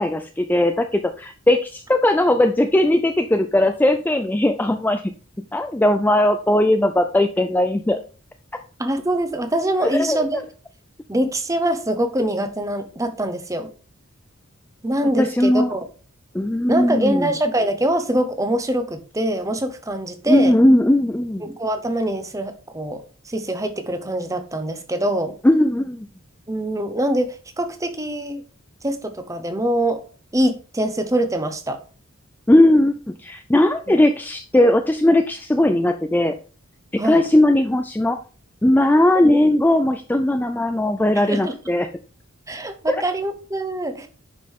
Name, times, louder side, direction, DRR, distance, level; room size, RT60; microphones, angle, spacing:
voice 1, 0.0-5.1 5.5-8.0 9.8-10.4 15.2-15.7 16.3-17.3 20.3-21.5 25.4-26.1 32.5-36.4 36.9-38.2 38.6-41.9 42.9-43.0, left 1 dB, 10° left, 7 dB, 0.4 m, -18 dB
voice 2, 8.8-10.4 11.1-13.7 14.8-15.9 16.7-20.5 21.4-25.3 26.5-28.4 28.8-30.0 30.3-31.8 33.9-34.0 37.0-37.2 39.2-39.5 41.1-41.5 42.5-44.1, right 1 dB, 15° right, 7 dB, 1.0 m, -24 dB
10.0 x 5.2 x 3.6 m, 0.37 s
head